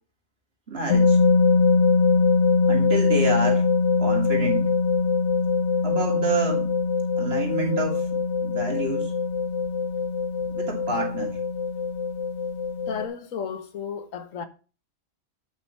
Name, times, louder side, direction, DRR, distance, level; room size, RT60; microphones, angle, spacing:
voice 1, 0.7-1.2 2.7-3.6 4.0-4.7 5.8-6.7 7.2-9.1 10.5-11.4, right 2 dB, 50° right, 2.7 m, -28 dB
sound 1, 0.9-13.1, left 4 dB, 65° left, 1.2 m, -22 dB
voice 2, 12.9-14.5, left 6 dB, 85° left, 1.5 m, -33 dB
8.4 x 6.2 x 5.6 m
omnidirectional pair, 1.3 m